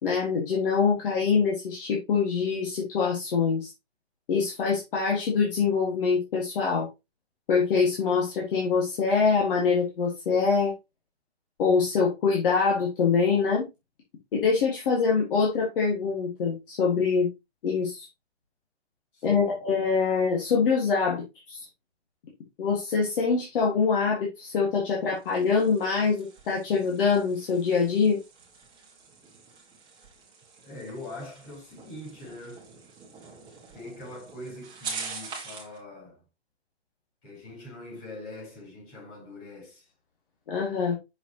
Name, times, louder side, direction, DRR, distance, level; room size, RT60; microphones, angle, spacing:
voice 1, 0.0-3.7 4.3-6.9 7.5-10.7 11.6-13.7 14.3-17.3 17.6-18.1 19.2-21.6 22.6-28.2 40.5-41.0, left 5 dB, 55° left, 2.0 m, -24 dB
voice 2, 19.1-19.6 30.6-32.7 33.7-36.2 37.2-39.9, left 2 dB, 35° left, 4.5 m, -43 dB
sound 1, 25.1-35.8, right 5 dB, 15° right, 1.8 m, -44 dB
6.5 x 5.4 x 3.0 m
hypercardioid pair, 155°, 33 cm